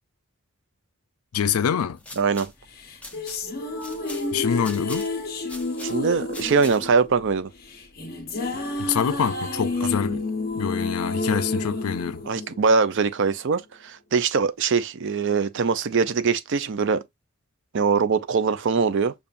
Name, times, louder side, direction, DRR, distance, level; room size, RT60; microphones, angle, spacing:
voice 1, 1.3-2.0 4.3-5.1 8.8-10.2 10.5-12.2, left 7 dB, 85° left, 0.4 m, -25 dB
sound 1, 1.8-7.1, left 2 dB, 5° left, 0.7 m, -43 dB
voice 2, 2.2-2.5 5.8-7.5 12.3-17.0 17.7-19.1, right 5 dB, 55° right, 0.5 m, -22 dB
sound 2, 2.8-13.2, left 2 dB, 45° left, 1.0 m, -30 dB
6.9 x 2.4 x 2.5 m
head